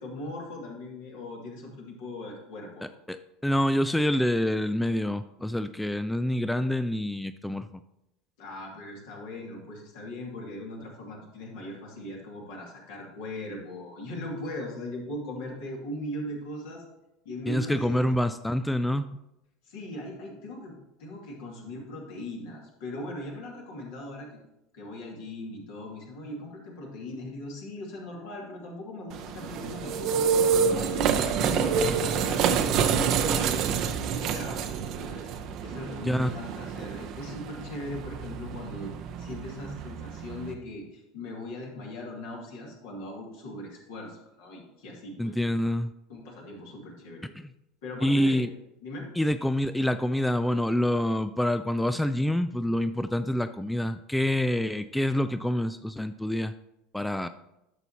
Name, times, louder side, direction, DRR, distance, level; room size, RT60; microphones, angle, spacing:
voice 1, 0.0-2.9 8.4-16.8 17.2-18.1 19.6-24.4 24.7-30.4 30.7-33.6 34.1-35.3 35.6-45.4 46.1-47.3 47.8-48.5 48.8-49.1, left 1 dB, 65° left, -2 dB, 2.5 m, -39 dB
voice 2, 3.1-7.8 17.5-19.2 36.0-36.3 45.2-45.9 47.4-47.5 48.0-48.5 49.2-56.5 56.9-57.3, left 1 dB, 5° left, 11 dB, 0.3 m, -27 dB
sound 1, 29.1-40.5, right 6 dB, 50° right, 0.7 m, -28 dB
11.0 x 6.8 x 2.9 m, 0.88 s
figure-of-eight pair, 75°, 0 cm